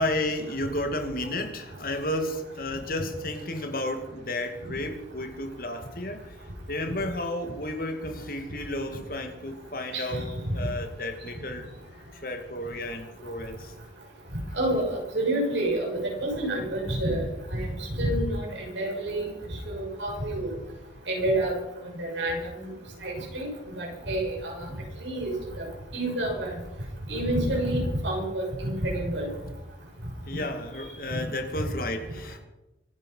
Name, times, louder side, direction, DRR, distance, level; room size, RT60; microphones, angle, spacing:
voice 1, 0.0-6.2 6.7-11.7 12.1-13.7 30.3-32.4, left 1 dB, 50° left, 6 dB, 2.3 m, -32 dB
voice 2, 9.9-10.2 14.5-17.3 17.5-19.3 19.7-20.5 21.1-21.5 21.8-22.7 23.0-23.5 23.8-24.7 25.0-26.5 27.1-29.3, right 1 dB, 80° right, -1 dB, 7.2 m, -28 dB
25.0 x 10.0 x 5.7 m, 0.98 s
head